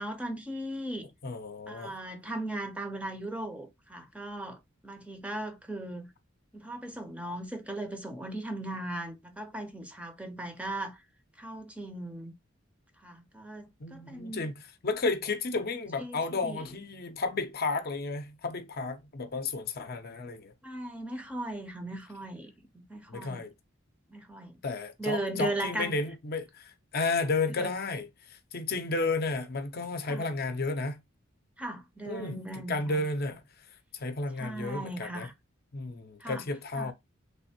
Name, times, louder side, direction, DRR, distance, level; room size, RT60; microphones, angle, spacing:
voice 1, 0.0-1.1 1.7-4.6 4.8-6.1 6.5-11.0 11.4-12.3 13.0-14.5 16.0-16.6 20.6-23.4 24.1-24.6 25.0-26.0 27.6-27.7 30.1-30.3 31.6-33.0 34.4-35.3 36.2-36.4 36.7-36.9, right 1 dB, 5° right, 0.5 m, -37 dB
voice 2, 1.2-2.0 13.8-20.5 23.1-23.5 24.6-31.0 32.1-33.4 33.9-35.3 35.7-36.9, left 3 dB, 50° left, 0.6 m, -32 dB
3.3 x 2.5 x 2.7 m
head